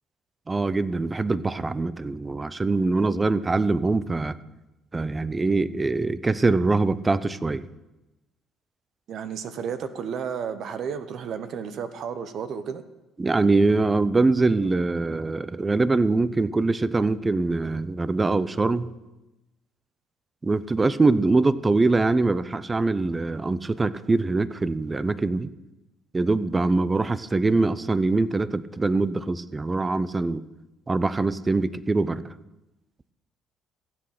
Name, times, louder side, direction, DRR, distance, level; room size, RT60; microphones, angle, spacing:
voice 1, 0.5-4.4 4.9-7.6 13.2-18.9 20.4-25.5 26.1-30.4 30.9-32.3, right 3 dB, 20° right, 16 dB, 0.6 m, -23 dB
voice 2, 9.1-12.8, right 7 dB, 60° right, 11 dB, 0.9 m, -32 dB
15.5 x 7.7 x 5.8 m, 1.0 s
supercardioid pair, 85°, 0 cm